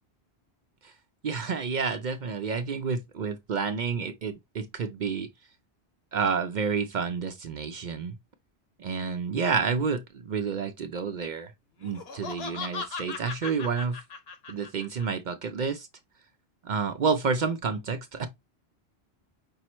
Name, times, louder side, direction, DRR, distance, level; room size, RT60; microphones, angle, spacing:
voice 1, 1.2-5.3 6.1-8.1 8.8-11.5 11.8-14.0 14.5-15.9 16.6-18.3, right 5 dB, 55° right, 0.6 m, -29 dB
Laughter, 11.8-15.1, left 5 dB, 65° left, 1.1 m, -38 dB
5.4 x 2.0 x 4.3 m
omnidirectional pair, 1.1 m